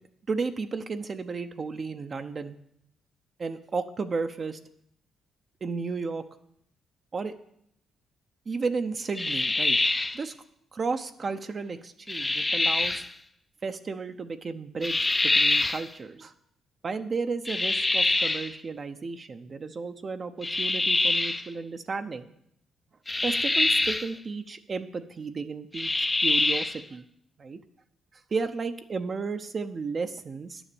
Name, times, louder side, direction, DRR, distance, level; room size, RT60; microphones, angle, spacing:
voice 1, 0.3-2.6 3.4-4.6 5.6-6.2 7.1-7.3 8.5-9.8 10.1-10.3 10.7-13.0 13.6-16.3 16.8-22.3 23.2-27.0 27.4-27.6 28.1-30.6, right 4 dB, 40° right, 7 dB, 0.6 m, -33 dB
sound 1, 9.2-10.2 12.1-13.1 14.8-15.9 17.5-18.5 20.4-21.5 23.1-24.1 25.7-26.8, left 2 dB, 15° left, 0.5 m, -25 dB
10.5 x 7.1 x 6.9 m, 0.73 s
cardioid pair, 90°, 0 cm